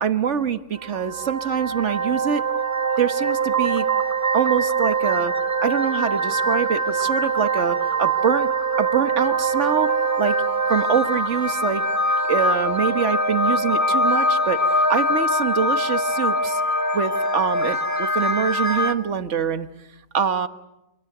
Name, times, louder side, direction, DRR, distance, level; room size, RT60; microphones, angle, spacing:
voice 1, 0.0-2.4 3.0-3.9 4.3-5.3 5.6-8.5 8.8-10.4 10.7-11.8 12.3-16.6 16.9-19.7 20.1-20.5, right 7 dB, 70° right, 10 dB, 1.6 m, -24 dB
sound 1, 0.8-18.9, right 1 dB, 15° right, 1.5 m, -23 dB
27.0 x 26.5 x 8.0 m, 0.92 s
omnidirectional pair, 1.2 m